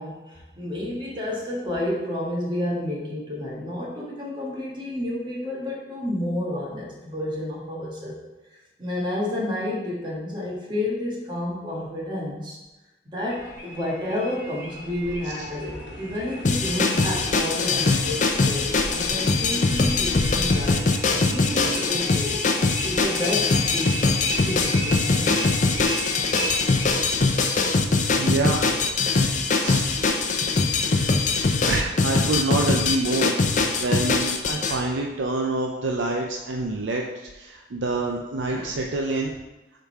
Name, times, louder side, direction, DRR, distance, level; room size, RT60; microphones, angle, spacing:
voice 1, 0.0-8.2 8.5-12.6 13.0-22.4 22.8-24.1 24.4-25.5 33.7-33.8 38.5-38.7, left 1 dB, 25° right, -4 dB, 1.5 m, -30 dB
sound 1, 13.3-26.9, equal, 80° left, 1.2 m, -35 dB
sound 2, 16.4-34.8, left 3 dB, 40° left, 0.6 m, -22 dB
voice 2, 28.2-28.6 29.5-29.9 31.7-39.3, right 2 dB, 90° right, 1 dB, 0.6 m, -27 dB
7.0 x 3.8 x 4.5 m, 1.1 s
head